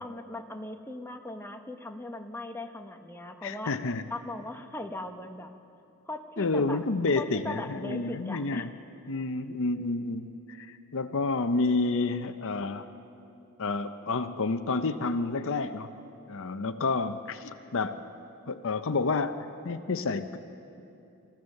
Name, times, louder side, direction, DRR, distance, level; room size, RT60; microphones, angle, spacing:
voice 1, 0.0-3.7 4.1-5.5 6.1-6.8 7.2-8.7, left 2 dB, 10° left, 4 dB, 0.9 m, -39 dB
voice 2, 3.4-4.0 6.4-8.7 9.1-12.9 13.6-15.9 16.3-18.0 18.5-19.3 19.6-20.4, left 3 dB, 60° left, 9 dB, 0.8 m, -29 dB
27.5 x 14.5 x 6.6 m, 2.7 s
head